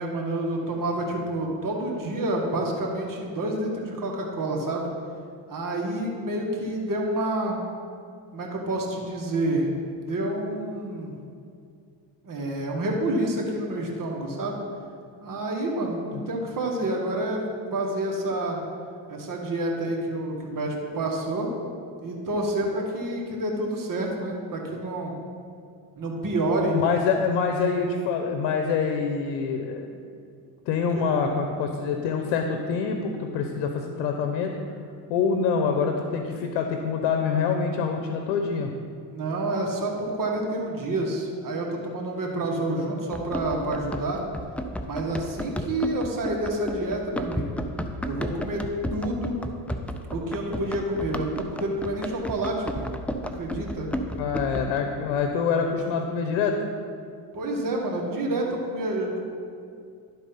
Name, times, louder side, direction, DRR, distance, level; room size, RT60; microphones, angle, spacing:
voice 1, 0.0-4.9 5.5-7.6 8.3-9.7 10.1-11.2 12.2-14.6 15.2-17.4 17.7-18.6 19.1-21.5 22.0-25.2 26.0-26.8 30.9-31.1 39.1-44.2 44.8-47.6 48.0-48.6 48.9-49.3 50.1-52.9 53.4-53.9 57.3-59.2, right 1 dB, 40° right, 0 dB, 2.0 m, -28 dB
voice 2, 26.7-29.9 30.7-34.6 35.1-38.7 54.2-56.6, left 5 dB, 75° left, 5 dB, 0.9 m, -25 dB
Run, 43.1-54.8, equal, 5° left, 0.4 m, -33 dB
11.5 x 4.1 x 5.6 m, 2.3 s
supercardioid pair, 75°, 50 cm